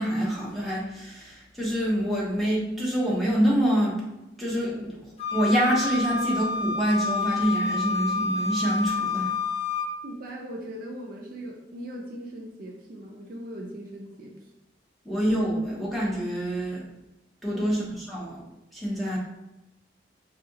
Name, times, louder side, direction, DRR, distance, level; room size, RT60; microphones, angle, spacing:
voice 1, 0.0-4.0 4.4-5.0 5.3-9.3 15.0-16.8 17.4-18.4 18.7-19.2, equal, ahead, -6 dB, 0.9 m, -26 dB
Wind instrument woodwind instrument, 5.2-9.9, left 3 dB, 35° left, 0.6 m, -28 dB
voice 2, 10.0-14.3 17.5-17.8, right 1 dB, 50° right, 0 dB, 0.5 m, -39 dB
3.9 x 2.8 x 2.7 m, 0.94 s
head